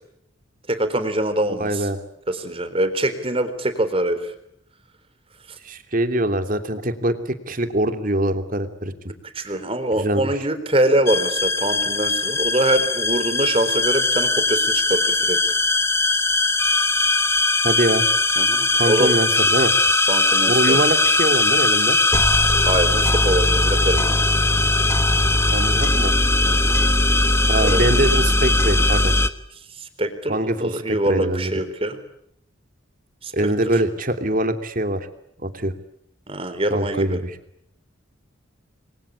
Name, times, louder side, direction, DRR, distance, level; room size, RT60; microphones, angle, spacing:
voice 1, 0.7-1.9 2.3-4.3 9.3-15.4 18.4-19.1 20.1-20.8 22.6-24.2 26.5-26.8 27.6-27.9 29.8-32.0 33.2-33.3 36.3-37.2, right 1 dB, 30° right, 10 dB, 3.8 m, -24 dB
voice 2, 1.6-2.0 5.6-7.1 7.5-8.9 10.0-10.5 17.6-18.0 18.7-19.7 20.5-22.0 25.5-26.1 27.5-29.1 30.3-31.5 33.3-35.1 35.4-35.7 36.7-37.3, right 1 dB, 45° right, 7 dB, 3.0 m, -23 dB
sound 1, 11.1-29.3, left 2 dB, 15° left, 1.3 m, -19 dB
29.5 x 23.5 x 8.5 m, 0.74 s
head